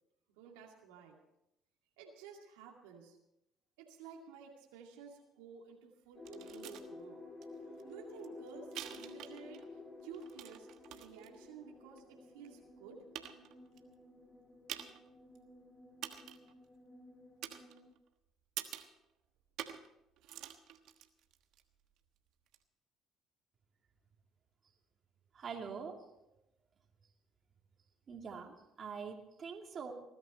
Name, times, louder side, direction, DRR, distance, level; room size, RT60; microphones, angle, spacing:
voice 1, 0.4-1.2 2.0-3.2 3.8-7.2 7.6-9.6 10.0-10.7 10.9-13.0, right 6 dB, 90° right, 0 dB, 2.4 m, -53 dB
sound 1, 6.2-17.9, left 2 dB, 30° left, 4.0 m, -53 dB
sound 2, 6.2-6.9 7.4-7.5 7.8-9.7 10.0-11.3 12.0-12.1 12.7-12.8 13.1-13.8 14.7-15.1 15.3-15.4 16.0-16.5 17.4-18.1 18.6-19.0 19.6-19.9 20.2-21.6 22.5-22.6, right 11 dB, 70° right, 1.3 m, -47 dB
voice 2, 25.3-26.0 28.1-29.9, right 6 dB, 45° right, 2 dB, 2.6 m, -44 dB
20.0 x 12.5 x 4.3 m, 0.85 s
supercardioid pair, 75°, 0 cm